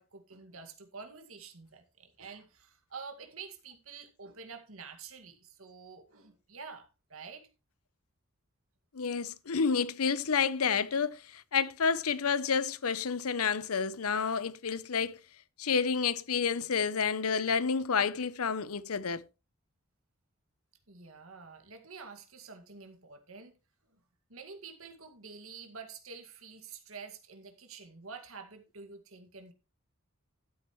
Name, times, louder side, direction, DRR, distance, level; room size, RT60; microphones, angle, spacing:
voice 1, 0.0-7.5 20.9-23.5 24.3-29.5, right 5 dB, 75° right, 2.1 m, -48 dB
voice 2, 8.9-15.2 15.6-19.2, left 6 dB, 90° left, 0.7 m, -29 dB
12.0 x 9.4 x 3.1 m
head